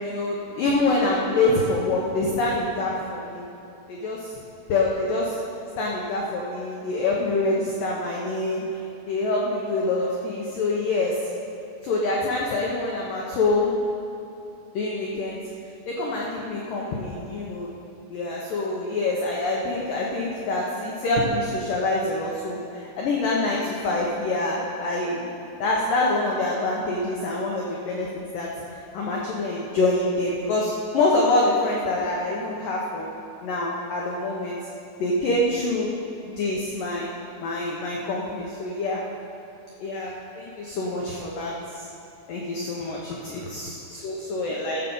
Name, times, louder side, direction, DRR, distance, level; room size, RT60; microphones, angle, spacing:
voice 1, 0.0-3.5 3.9-4.3 4.7-5.4 5.8-8.6 9.1-11.1 11.8-13.7 14.7-15.4 15.9-17.7 18.1-25.3 25.6-28.5 28.9-33.1 33.4-34.6 35.0-35.9 36.3-37.1 37.4-39.0 39.8-41.9 42.3-44.8, left 2 dB, 80° left, -3 dB, 1.9 m, -26 dB
15.0 x 7.4 x 5.4 m, 2.7 s
omnidirectional pair, 5.4 m